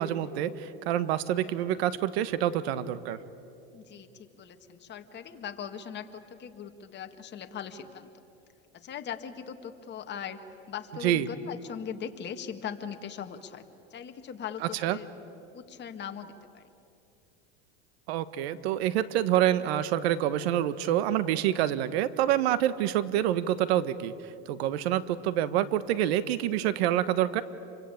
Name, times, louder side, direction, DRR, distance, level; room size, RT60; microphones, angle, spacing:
voice 1, 0.0-3.2 11.0-11.3 14.8-15.0 18.1-27.4, right 12 dB, 75° right, 14 dB, 1.4 m, -27 dB
voice 2, 3.7-8.1 8.7-10.4 10.7-13.6 13.9-15.1 15.5-16.6, left 8 dB, 35° left, 6 dB, 2.0 m, -40 dB
27.5 x 24.0 x 8.6 m, 2.7 s
supercardioid pair, 115°, 32 cm